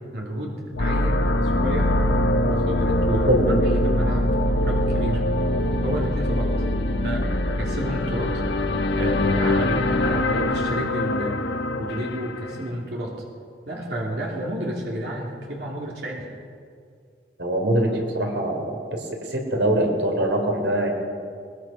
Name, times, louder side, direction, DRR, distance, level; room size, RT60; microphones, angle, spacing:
voice 1, 0.1-1.9 2.4-4.4 4.6-5.2 5.8-6.5 7.0-7.3 7.6-8.4 8.9-11.4 11.8-13.2 13.6-16.3, right 1 dB, 70° right, -2 dB, 3.1 m, -31 dB
sound 1, 0.7-12.7, left 1 dB, 80° left, 1.2 m, -23 dB
voice 2, 3.3-3.8 17.4-20.9, right 1 dB, 90° right, 3 dB, 3.4 m, -23 dB
21.5 x 21.5 x 5.8 m, 2.3 s
head